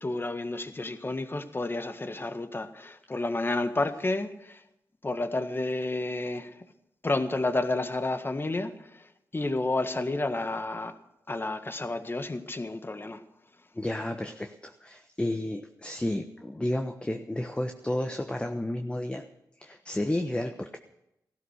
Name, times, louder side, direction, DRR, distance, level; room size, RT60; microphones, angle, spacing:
voice 1, 0.0-4.6 5.0-6.6 7.0-10.9 11.3-13.2, left 2 dB, 30° left, 9 dB, 1.6 m, -31 dB
voice 2, 13.7-19.2 19.6-20.8, left 1 dB, 15° left, 5 dB, 1.2 m, -32 dB
16.0 x 12.5 x 6.6 m, 0.84 s
cardioid pair, 55°, 7 cm